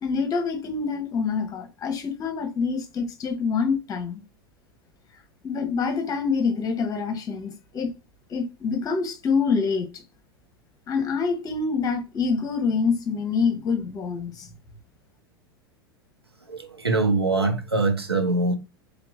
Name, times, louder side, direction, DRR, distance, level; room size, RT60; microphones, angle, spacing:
voice 1, 0.0-4.2 5.4-7.9 8.3-10.0 10.9-14.5, left 5 dB, 30° left, 1.0 m, -26 dB
voice 2, 16.8-18.5, right 3 dB, 90° right, 0.8 m, -22 dB
3.5 x 2.9 x 3.6 m
figure-of-eight pair, 90°, 13 cm